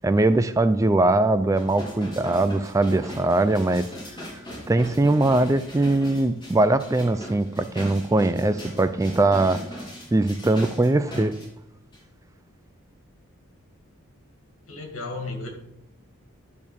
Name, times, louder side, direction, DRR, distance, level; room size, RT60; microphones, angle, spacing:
voice 1, 0.0-3.9 4.7-9.6 10.1-11.3, right 2 dB, 15° right, 12 dB, 0.3 m, -21 dB
sound 1, 1.5-11.5 11.9-12.0, equal, 20° left, 3.5 m, -39 dB
voice 2, 14.7-15.5, left 3 dB, 75° left, 2 dB, 2.3 m, -33 dB
10.5 x 4.5 x 7.1 m, 0.80 s
head